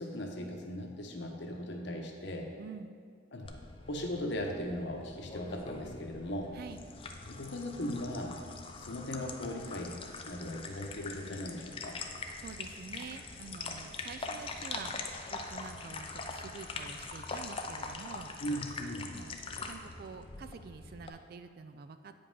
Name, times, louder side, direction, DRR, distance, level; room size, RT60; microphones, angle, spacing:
voice 1, 0.0-2.5 3.3-3.5 3.9-6.5 7.2-8.4 8.8-10.0 10.2-12.0 18.4-19.1, left 1 dB, 60° left, 2 dB, 1.0 m, -38 dB
voice 2, 2.6-2.9 6.5-6.8 12.4-18.3 19.1-19.4 19.7-22.1, right 5 dB, 50° right, 10 dB, 0.3 m, -47 dB
sound 1, 3.4-21.1, left 3 dB, 25° left, 0.4 m, -43 dB
8.5 x 5.3 x 5.3 m, 2.1 s
head